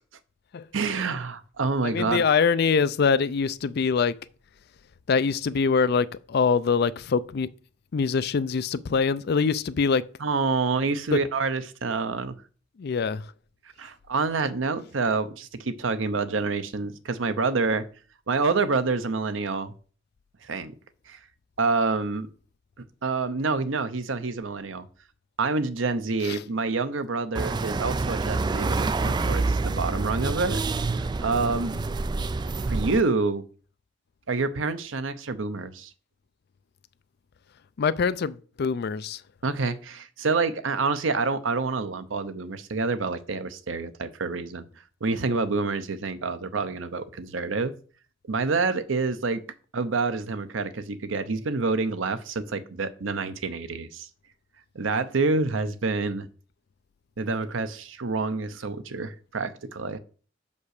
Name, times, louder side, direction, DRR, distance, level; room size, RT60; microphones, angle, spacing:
voice 1, 0.7-2.2 10.2-12.3 13.8-17.8 18.3-19.7 20.4-20.7 21.1-21.2 21.6-22.3 23.0-24.9 25.4-30.6 31.0-31.8 32.7-33.4 34.3-35.9 39.4-44.7 45.0-47.7 48.3-49.4 49.7-54.1 54.7-56.3 57.2-60.0, right 4 dB, 90° right, 0.8 m, -27 dB
voice 2, 1.8-4.2 5.1-7.5 7.9-10.0 11.1-11.2 12.8-13.3 26.2-26.4 37.8-39.2, left 5 dB, 55° left, 0.4 m, -24 dB
sound 1, 27.3-33.0, right 3 dB, 25° right, 0.3 m, -27 dB
5.8 x 5.4 x 6.5 m
head